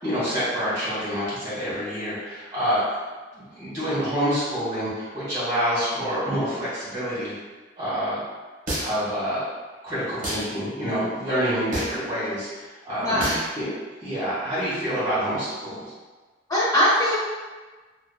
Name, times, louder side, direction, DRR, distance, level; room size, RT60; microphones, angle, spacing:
voice 1, 0.0-2.8 3.3-7.3 7.8-8.2 8.8-9.5 9.8-13.3 13.5-13.7 14.0-15.8, equal, 20° right, -13 dB, 1.4 m, -27 dB
sound 1, 8.7-9.1 10.2-10.5 11.7-12.1 13.2-13.5, right 1 dB, 45° right, 0.9 m, -28 dB
voice 2, 13.0-13.4 16.5-17.2, left 1 dB, 20° left, -11 dB, 0.9 m, -21 dB
2.7 x 2.3 x 2.3 m, 1.3 s
head